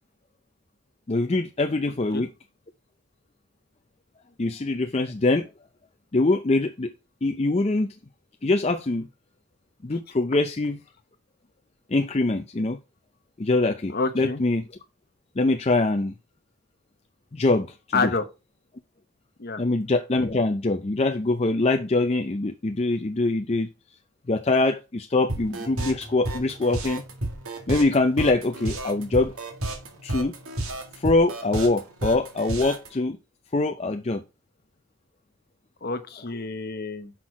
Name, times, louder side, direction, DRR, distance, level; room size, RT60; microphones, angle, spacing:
voice 1, 1.1-2.3 4.4-5.5 6.1-6.9 7.2-7.9 8.4-9.1 9.8-10.8 11.9-12.8 13.4-14.6 15.4-16.1 17.3-18.1 19.6-23.7 24.3-27.0 27.7-29.3 30.0-30.3 31.0-33.2 33.5-34.2, left 2 dB, 30° left, 0.5 m, -23 dB
voice 2, 13.9-14.4 17.9-18.2 19.4-19.6 35.8-37.1, left 4 dB, 45° left, 0.9 m, -28 dB
sound 1, 25.3-32.9, right 1 dB, 75° right, 2.0 m, -31 dB
6.2 x 5.8 x 4.8 m
head